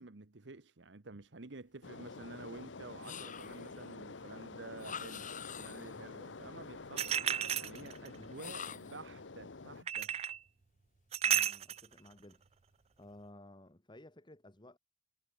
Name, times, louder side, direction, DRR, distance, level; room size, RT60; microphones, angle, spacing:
voice 1, 0.0-7.2 7.6-10.2, right 3 dB, 75° right, 1.2 m, -50 dB
sound 1, 1.8-9.8, left 3 dB, 85° left, 1.0 m, -48 dB
sound 2, 3.0-3.8 4.8-6.0 8.3-9.1, left 8 dB, 45° left, 1.6 m, -46 dB
sound 3, 7.0-8.2 9.9-10.4 11.1-11.9, right 10 dB, 35° right, 0.4 m, -32 dB
voice 2, 8.1-8.8 11.2-12.5 13.0-14.8, left 1 dB, 25° left, 2.2 m, -56 dB
head